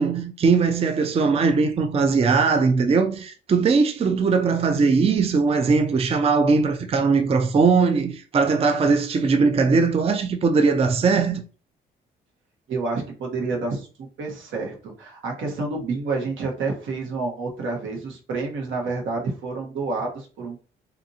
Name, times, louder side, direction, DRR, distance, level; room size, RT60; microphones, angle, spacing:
voice 1, 0.0-11.4, right 4 dB, 30° right, 0.4 m, -20 dB
voice 2, 12.7-20.6, right 3 dB, 80° right, 1.2 m, -29 dB
3.8 x 2.6 x 2.7 m
cardioid pair, 90°, 20 cm